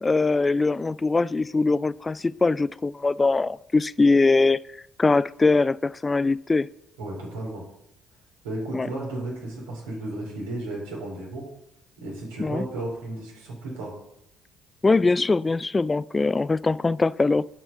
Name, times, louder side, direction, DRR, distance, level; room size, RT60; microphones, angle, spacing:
voice 1, 0.0-4.6 5.0-6.7 8.7-8.9 12.4-12.7 14.8-17.5, left 3 dB, 25° left, 0.3 m, -22 dB
voice 2, 7.0-7.6 8.4-11.5 12.0-14.0, right 2 dB, 85° right, 3.4 m, -34 dB
8.3 x 5.5 x 7.2 m
hypercardioid pair, 55°, 0 cm